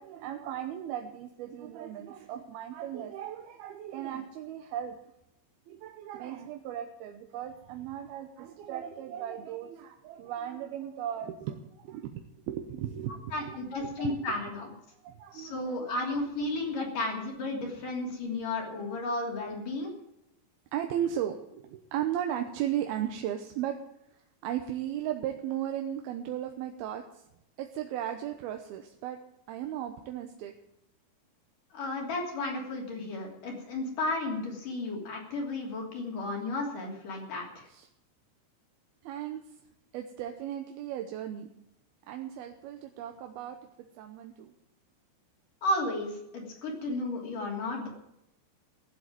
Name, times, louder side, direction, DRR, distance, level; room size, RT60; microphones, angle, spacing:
voice 1, 0.0-5.0 5.7-14.5 15.0-15.9 16.4-16.5 18.6-18.7 20.7-23.7 24.1-27.3 27.6-29.2 29.5-30.5 37.7-37.9 39.0-39.6 39.9-41.5 42.1-43.6 44.0-44.5, right 10 dB, 80° right, 5 dB, 2.7 m, -36 dB
voice 2, 13.3-14.7 15.3-19.9 31.7-37.6 45.6-47.9, left 2 dB, 55° left, -1 dB, 4.5 m, -33 dB
15.0 x 7.8 x 9.0 m, 0.84 s
omnidirectional pair, 4.6 m